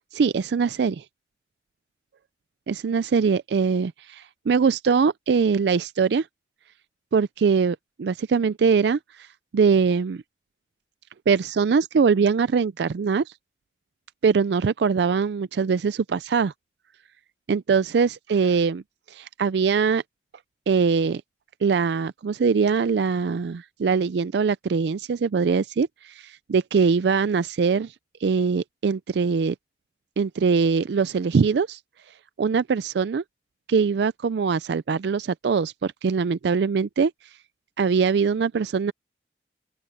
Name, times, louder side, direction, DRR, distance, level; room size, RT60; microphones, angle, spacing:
voice 1, 0.1-1.0 2.7-6.3 7.1-9.3 9.5-10.2 11.3-13.3 14.2-16.5 17.5-18.8 19.1-20.0 20.7-21.2 21.6-27.9 28.2-29.5 30.2-31.8 32.4-33.2 33.7-37.1 37.8-38.9, right 5 dB, 75° right, 0.4 m, -22 dB
open air
head